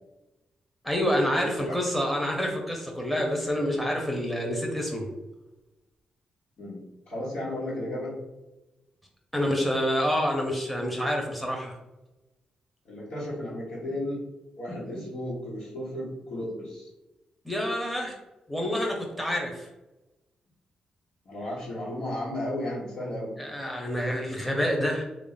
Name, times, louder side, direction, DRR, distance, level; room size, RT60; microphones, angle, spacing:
voice 1, 0.8-5.1 9.3-11.7 17.4-18.1 18.5-19.7 23.4-25.0, equal, ahead, 0 dB, 0.9 m, -27 dB
voice 2, 1.4-1.8 6.6-6.8 7.1-8.1 12.8-14.2 14.6-16.9 21.2-23.4, left 1 dB, 75° left, -11 dB, 1.3 m, -34 dB
3.1 x 2.5 x 4.0 m, 1.0 s
supercardioid pair, 45°, 3 cm